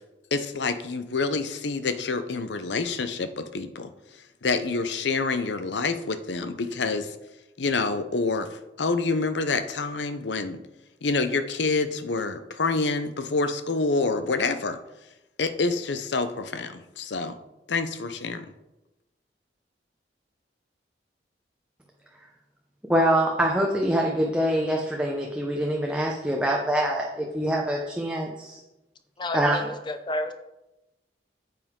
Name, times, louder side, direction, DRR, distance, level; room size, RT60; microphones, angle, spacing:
voice 1, 0.3-3.9 4.4-7.2 7.6-10.6 11.0-14.8 15.4-17.4 17.7-18.5, left 3 dB, 90° left, 10 dB, 0.7 m, -27 dB
voice 2, 22.9-28.6 29.3-29.6, right 1 dB, 5° right, 0 dB, 0.8 m, -24 dB
voice 3, 29.2-30.3, left 2 dB, 25° left, 8 dB, 0.7 m, -31 dB
9.3 x 7.7 x 3.7 m, 0.99 s
head